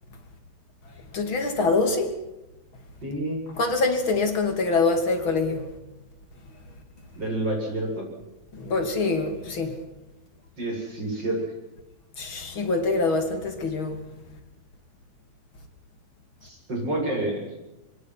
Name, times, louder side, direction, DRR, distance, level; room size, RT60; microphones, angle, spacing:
voice 1, 1.1-2.1 3.6-5.7 8.5-9.8 12.2-14.0 14.3-14.4, left 3 dB, 35° left, 3.4 m, -24 dB
voice 2, 3.0-3.4 7.1-8.1 10.6-11.4 16.4-17.5, right 1 dB, 25° right, 8.4 m, -28 dB
25.0 x 22.5 x 6.0 m
omnidirectional pair, 4.2 m